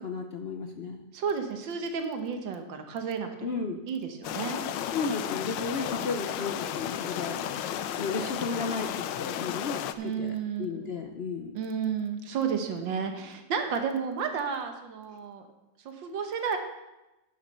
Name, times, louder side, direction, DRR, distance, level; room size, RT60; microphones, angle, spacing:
voice 1, 0.0-1.0 3.4-3.9 4.9-7.4 8.0-11.5, left 4 dB, 65° left, 4 dB, 0.6 m, -34 dB
voice 2, 1.1-4.6 10.0-10.9 11.5-15.5 15.8-16.6, right 6 dB, 85° right, 6 dB, 1.8 m, -32 dB
sound 1, 4.2-9.9, left 10 dB, 80° left, 1.3 m, -33 dB
9.1 x 7.4 x 6.7 m, 1.0 s
omnidirectional pair, 2.0 m